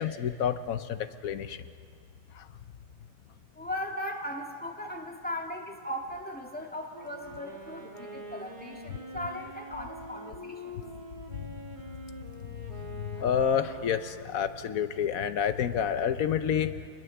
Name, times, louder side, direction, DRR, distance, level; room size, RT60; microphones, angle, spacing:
voice 1, 0.0-1.6 2.3-2.5 11.4-11.5 12.7-16.8, left 8 dB, 85° left, 10 dB, 1.2 m, -29 dB
voice 2, 3.5-10.8, left 1 dB, 5° left, 1 dB, 2.1 m, -38 dB
Wind instrument woodwind instrument, 6.9-14.8, right 1 dB, 35° right, 2.2 m, -45 dB
26.5 x 21.0 x 7.1 m, 2.2 s
omnidirectional pair, 1.5 m